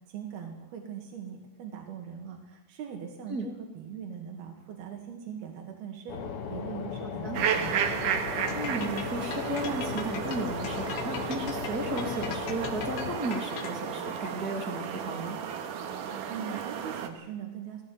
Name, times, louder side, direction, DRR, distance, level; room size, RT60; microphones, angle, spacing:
voice 1, 0.1-6.2 6.5-7.8 16.3-17.8, right 8 dB, 80° right, 2 dB, 4.1 m, -41 dB
sound 1, 6.1-13.2, left 6 dB, 50° left, 1.8 m, -37 dB
sound 2, 7.3-17.1, right 8 dB, 65° right, 2.9 m, -33 dB
sound 3, 8.5-14.0, left 8 dB, 85° left, 3.6 m, -40 dB
voice 2, 8.5-15.4, right 2 dB, 30° right, 3 dB, 2.3 m, -34 dB
18.5 x 16.0 x 9.4 m, 1.0 s
omnidirectional pair, 4.4 m